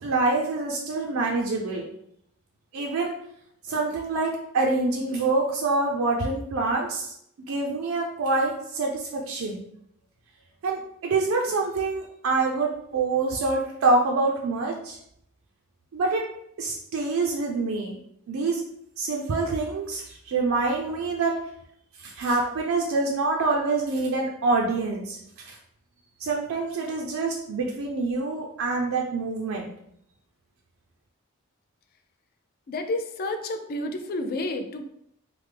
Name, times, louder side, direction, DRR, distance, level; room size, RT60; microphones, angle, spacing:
voice 1, 0.0-1.9 2.7-3.1 3.7-7.1 7.5-9.7 10.6-15.0 15.9-16.2 16.6-18.0 18.3-18.6 19.0-21.3 22.0-25.6 26.2-29.7, right 3 dB, 65° right, 0 dB, 0.4 m, -26 dB
voice 2, 32.7-34.9, left 2 dB, 45° left, 7 dB, 0.3 m, -30 dB
3.2 x 2.0 x 3.2 m, 0.72 s
head